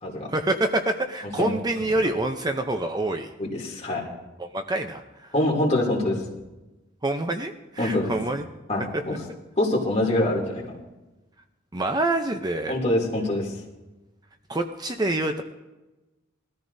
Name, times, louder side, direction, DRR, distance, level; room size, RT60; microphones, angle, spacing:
voice 1, 0.3-3.3 4.4-5.3 7.0-8.4 8.9-9.0 11.7-12.8 14.5-15.4, right 2 dB, 20° right, 6 dB, 0.6 m, -26 dB
voice 2, 3.4-4.0 5.3-6.2 7.8-8.1 8.7-9.1 9.6-10.7 12.7-13.5, left 1 dB, 35° left, -2 dB, 2.7 m, -24 dB
21.0 x 13.5 x 2.7 m, 1.1 s
head